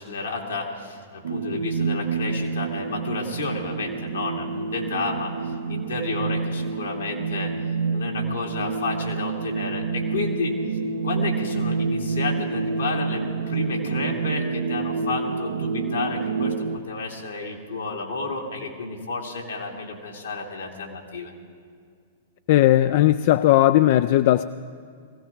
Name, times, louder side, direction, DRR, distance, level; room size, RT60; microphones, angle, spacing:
voice 1, 0.0-7.5 7.9-10.6 11.0-21.3, left 3 dB, 85° left, 0 dB, 2.5 m, -31 dB
sound 1, 1.2-16.8, right 4 dB, 80° right, 0.7 m, -28 dB
voice 2, 22.5-24.4, left 14 dB, 55° left, 13 dB, 0.3 m, -17 dB
20.5 x 16.0 x 3.7 m, 2.2 s
hypercardioid pair, 110°, 0 cm